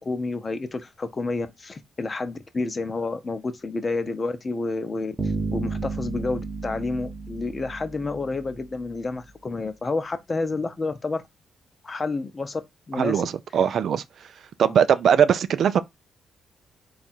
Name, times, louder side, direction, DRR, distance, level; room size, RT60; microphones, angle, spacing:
voice 1, 0.0-11.2 11.8-12.6 12.9-13.3 14.7-14.8, left 3 dB, 35° left, 0.7 m, -29 dB
sound 1, 5.2-8.6, right 3 dB, 25° right, 1.0 m, -32 dB
voice 2, 13.0-14.0 14.6-15.8, right 8 dB, 65° right, 0.3 m, -20 dB
3.5 x 2.5 x 4.2 m
supercardioid pair, 60°, 0 cm